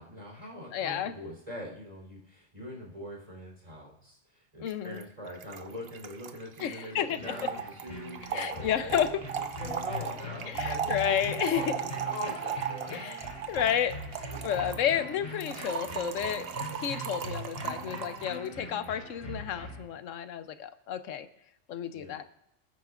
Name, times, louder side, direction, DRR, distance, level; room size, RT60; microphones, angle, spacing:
voice 1, 0.0-13.1 14.3-14.4 17.7-18.0 21.9-22.2, left 1 dB, 30° right, -2 dB, 3.8 m, -43 dB
voice 2, 0.7-1.1 4.6-5.0 6.6-7.5 8.3-9.2 10.5-11.8 12.9-16.5 16.8-21.3 21.7-22.2, left 9 dB, 85° left, 11 dB, 1.1 m, -31 dB
Trickle dribble / Fill (with liquid), 4.7-4.8 5.0-5.1 5.3-18.4, right 7 dB, 55° right, 0.9 m, -37 dB
sound 1, 7.2-19.8, equal, 35° left, 3.3 m, -42 dB
20.5 x 9.3 x 2.5 m, 0.81 s
omnidirectional pair, 1.3 m